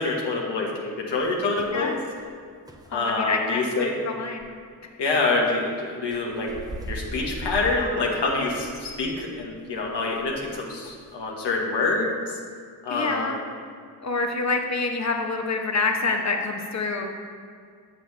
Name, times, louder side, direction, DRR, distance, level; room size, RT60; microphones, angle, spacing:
voice 1, 0.0-2.0 2.9-3.9 5.0-6.5 6.9-12.4 12.8-13.4, left 3 dB, 80° left, -2 dB, 1.3 m, -26 dB
sound 1, 1.2-1.8 2.2-2.3 2.7-2.9 4.4-4.5 6.1-10.5 10.8-11.1, right 1 dB, 10° right, 0.9 m, -39 dB
voice 2, 2.9-4.5 12.9-13.4 14.0-17.1, left 3 dB, 40° left, 3 dB, 1.0 m, -27 dB
7.5 x 7.1 x 3.3 m, 2.1 s
supercardioid pair, 45°, 41 cm